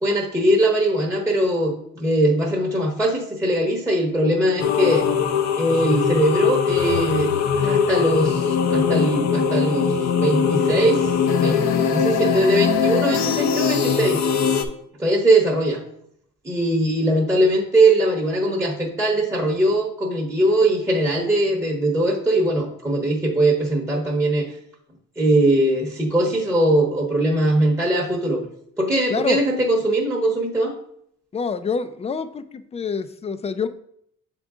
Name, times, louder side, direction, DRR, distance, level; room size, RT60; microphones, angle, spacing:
voice 1, 0.0-5.1 5.6-7.3 7.6-14.2 15.0-15.8 16.4-24.5 25.2-28.5 28.8-30.7, right 1 dB, 10° right, -1 dB, 0.9 m, -21 dB
sound 1, 4.6-14.6, left 7 dB, 65° left, 0.7 m, -21 dB
voice 2, 29.1-29.4 31.3-33.7, left 5 dB, 20° left, 12 dB, 0.4 m, -26 dB
6.9 x 3.7 x 3.6 m, 0.70 s
cardioid pair, 90°, 30 cm